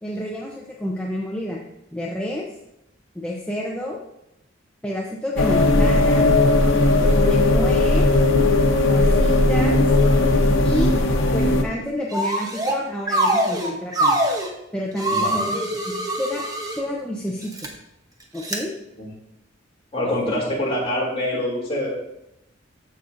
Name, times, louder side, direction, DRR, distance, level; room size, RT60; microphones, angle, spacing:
voice 1, 0.0-1.6 1.9-2.4 3.1-4.0 4.8-6.3 7.0-8.1 8.9-9.9 10.6-10.9 11.3-14.2 14.7-16.4 16.7-17.7 18.3-18.7 20.0-20.4, left 1 dB, 5° left, -3 dB, 0.7 m, -29 dB
sound 1, 5.4-11.6, left 2 dB, 80° left, 0.9 m, -17 dB
sound 2, 12.1-12.8 13.1-14.5 15.0-16.8 17.4-17.7 18.4-18.6, right 1 dB, 20° right, 0.9 m, -23 dB
voice 2, 15.1-15.5 19.0-19.1 19.9-21.9, left 1 dB, 30° left, -4 dB, 2.8 m, -25 dB
14.0 x 5.4 x 2.6 m, 0.83 s
head